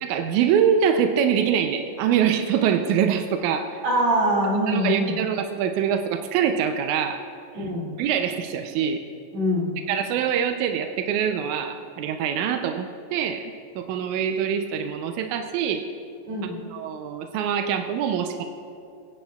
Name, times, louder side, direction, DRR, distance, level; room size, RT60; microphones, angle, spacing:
voice 1, 0.0-3.8 4.7-7.2 8.0-9.0 9.9-15.9 16.7-18.4, right 8 dB, 85° right, 6 dB, 1.7 m, -24 dB
voice 2, 3.8-5.1 7.5-7.9 9.3-9.8 16.2-16.6, equal, 50° right, -5 dB, 3.4 m, -23 dB
23.0 x 10.0 x 2.3 m, 2.3 s
omnidirectional pair, 4.0 m